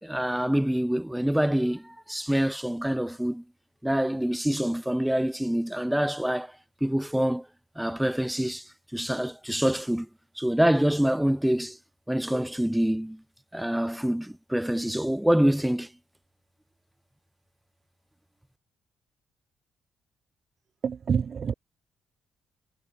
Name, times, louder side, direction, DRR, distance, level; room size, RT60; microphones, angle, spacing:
voice 1, 0.0-3.4 3.8-6.5 6.8-7.5 7.8-8.6 8.9-10.1 10.4-11.8 12.1-13.2 13.5-15.9, equal, 5° right, 4.6 m, -26 dB
voice 2, 20.8-21.5, right 6 dB, 50° right, 1.1 m, -27 dB
cardioid pair, 90°, 0 cm